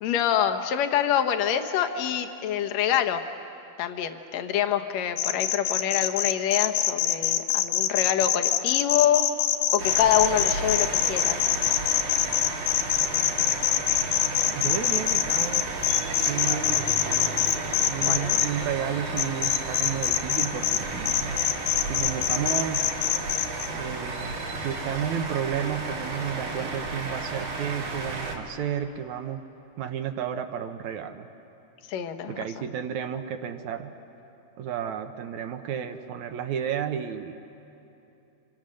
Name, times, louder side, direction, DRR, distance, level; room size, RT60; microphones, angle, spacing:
voice 1, 0.0-3.2 3.8-9.3 9.7-11.4 18.0-18.4 31.9-32.5, left 9 dB, 65° left, 7 dB, 2.0 m, -26 dB
sound 1, 5.2-18.5 19.2-20.8 21.1-23.7, left 12 dB, 80° left, 2.4 m, -24 dB
sound 2, 9.8-28.4, right 3 dB, 90° right, 4.7 m, -33 dB
voice 2, 14.6-15.7 16.3-17.4 17.9-21.4 21.9-22.9 23.7-29.4 29.8-31.3 32.3-33.9 34.6-37.3, right 8 dB, 70° right, 7 dB, 2.0 m, -32 dB
29.0 x 26.0 x 6.5 m, 2.9 s
omnidirectional pair, 4.0 m